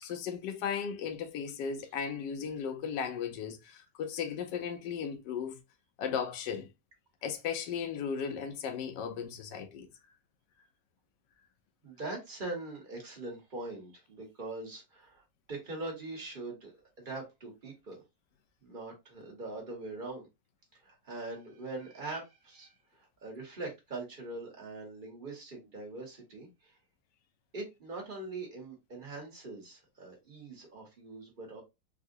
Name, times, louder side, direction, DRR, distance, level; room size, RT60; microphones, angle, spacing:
voice 1, 0.0-5.6 6.0-6.7 7.2-9.9, left 7 dB, 75° left, 1.2 m, -36 dB
voice 2, 11.8-18.0 18.6-20.3 20.8-26.8 27.5-31.6, right 2 dB, 30° right, 1.2 m, -42 dB
3.7 x 2.4 x 2.5 m
omnidirectional pair, 1.9 m